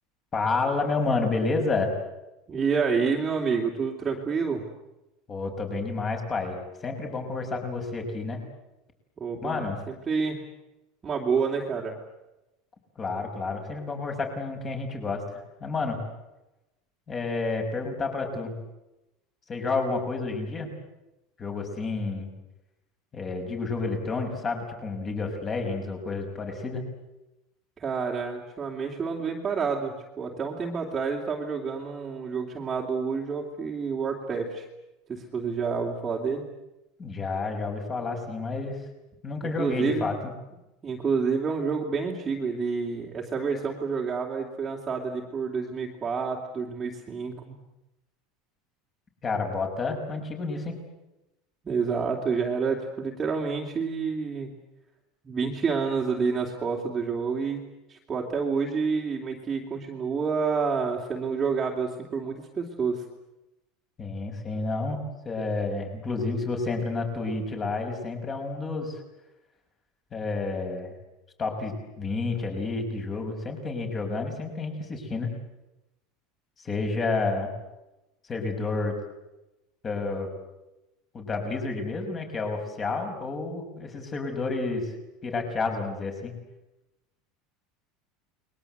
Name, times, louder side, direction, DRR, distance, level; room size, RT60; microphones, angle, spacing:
voice 1, 0.3-2.0 5.3-8.4 9.4-9.8 13.0-16.0 17.1-18.5 19.5-20.7 21.4-22.3 23.1-26.8 37.0-38.8 39.2-40.3 49.2-50.7 64.0-65.0 65.2-69.0 70.1-70.9 71.4-75.3 76.6-77.5 78.3-79.0 79.8-80.3 81.1-84.9 85.2-86.4, left 3 dB, 20° left, 4 dB, 6.1 m, -30 dB
voice 2, 2.5-4.7 9.2-10.4 11.0-11.9 27.8-34.7 35.1-36.5 39.6-40.1 40.8-47.5 51.6-54.5 55.2-57.6 57.9-63.0, right 5 dB, 20° right, -2 dB, 3.1 m, -28 dB
29.5 x 22.5 x 8.1 m, 0.97 s
supercardioid pair, 155°, 0 cm